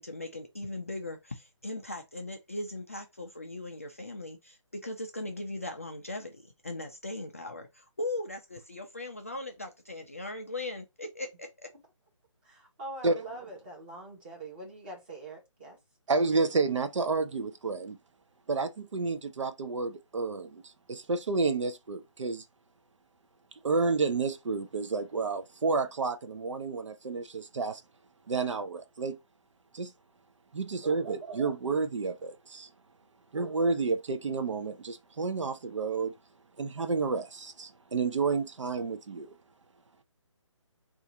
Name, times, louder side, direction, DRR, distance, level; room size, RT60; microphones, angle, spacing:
voice 1, 0.0-11.7, left 2 dB, 25° left, 0.3 m, -39 dB
voice 2, 12.4-15.8, right 2 dB, 20° right, 1.1 m, -43 dB
voice 3, 16.1-18.0 18.5-22.4 23.6-27.8 28.3-29.2 29.7-29.9 30.5-32.7 33.3-36.1 36.6-39.3, right 4 dB, 70° right, 0.5 m, -30 dB
3.8 x 2.4 x 2.7 m
hypercardioid pair, 170°, 16 cm